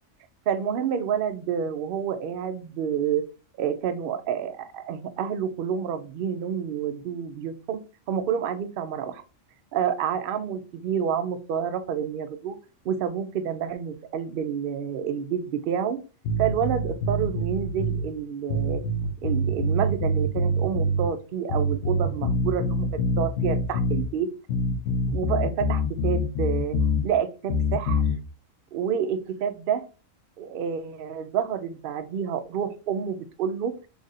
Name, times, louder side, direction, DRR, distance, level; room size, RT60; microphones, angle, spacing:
voice 1, 0.5-3.3 3.6-9.2 9.7-12.6 12.8-16.0 16.4-18.8 19.2-24.3 25.1-26.8 27.0-28.0 28.7-29.8 30.4-33.7, right 8 dB, 60° right, 9 dB, 0.6 m, -29 dB
sound 1, 16.2-18.1 18.5-21.1 21.5-24.1 24.5-27.1 27.5-28.2, left 1 dB, 70° left, 1.0 m, -25 dB
3.3 x 2.5 x 4.0 m, 0.34 s
omnidirectional pair, 1.3 m